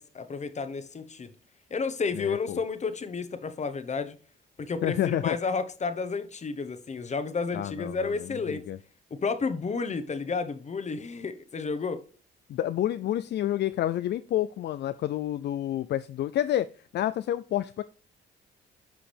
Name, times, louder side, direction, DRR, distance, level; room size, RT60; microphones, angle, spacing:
voice 1, 0.0-1.3 1.7-4.2 4.6-8.6 9.1-12.0, left 4 dB, 35° left, 1.1 m, -31 dB
voice 2, 2.1-2.6 4.8-5.4 7.5-8.8 12.5-16.7 16.9-17.8, left 12 dB, 60° left, 0.4 m, -29 dB
11.5 x 4.9 x 3.4 m
cardioid pair, 90°, 20 cm